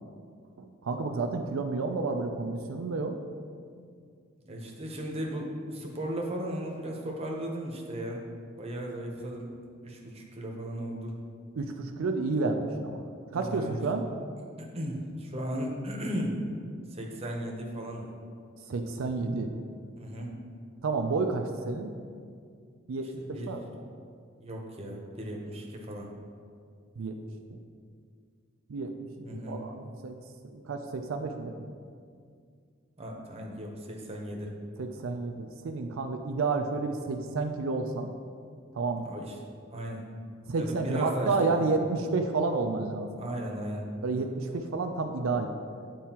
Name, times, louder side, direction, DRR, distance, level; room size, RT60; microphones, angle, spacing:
voice 1, 0.6-3.2 11.6-13.0 13.3-14.0 18.7-19.5 20.8-21.9 22.9-23.6 27.0-27.1 27.5-27.6 28.7-28.9 29.2-30.2 30.5-31.7 34.8-38.1 38.7-39.1 40.5-43.2 44.0-45.5, right 3 dB, 85° right, 5 dB, 0.4 m, -30 dB
voice 2, 4.4-8.2 8.6-9.5 9.8-11.1 13.3-13.8 14.6-16.4 16.9-18.1 20.0-20.4 23.3-23.6 24.4-26.1 29.2-29.6 33.0-34.5 39.0-39.3 39.7-40.1 40.6-41.5 43.2-43.8, equal, 30° right, 0 dB, 0.8 m, -36 dB
9.1 x 4.6 x 2.9 m, 2.2 s
head